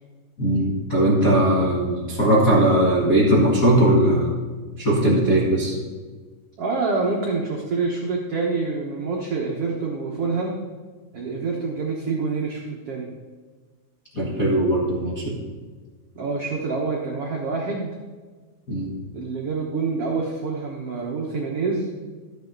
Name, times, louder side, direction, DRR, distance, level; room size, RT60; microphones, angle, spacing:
voice 1, 0.4-4.4 4.8-5.7 14.1-15.4 18.7-18.9, right 1 dB, 85° left, -6 dB, 0.7 m, -19 dB
voice 2, 6.6-10.6 11.1-13.1 16.1-17.9 19.1-21.9, right 4 dB, 85° right, -2 dB, 1.3 m, -26 dB
13.5 x 8.0 x 3.9 m, 1.4 s
omnidirectional pair, 4.7 m